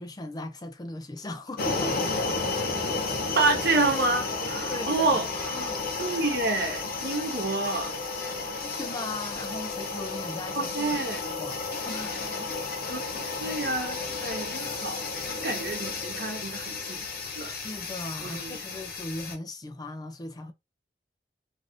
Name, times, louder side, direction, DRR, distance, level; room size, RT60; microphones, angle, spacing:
voice 1, 0.0-2.0 4.6-5.1 8.6-11.0 11.4-12.5 17.4-20.5, left 2 dB, 20° left, 0.4 m, -38 dB
sound 1, 1.6-19.4, left 3 dB, 55° left, 0.7 m, -32 dB
voice 2, 3.3-7.9 10.5-11.2 12.9-15.1 15.4-17.1 17.4-17.5 18.2-18.6, right 3 dB, 60° right, 0.9 m, -29 dB
3.1 x 2.6 x 2.5 m
head